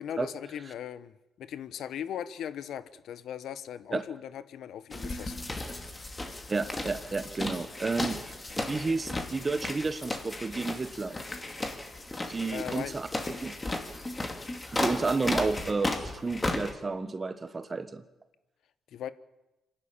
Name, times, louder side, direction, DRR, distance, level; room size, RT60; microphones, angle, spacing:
voice 1, 0.0-5.5 12.5-12.9 18.9-19.1, left 9 dB, 75° left, 15 dB, 1.0 m, -38 dB
sound 1, 4.9-16.7, left 2 dB, 20° left, 2.6 m, -35 dB
voice 2, 6.5-8.2 8.6-11.2 12.3-13.1 13.4-13.5 14.7-18.0, right 3 dB, 30° right, 11 dB, 1.4 m, -31 dB
26.0 x 12.0 x 8.8 m, 1.0 s
cardioid pair, 90°, 0 cm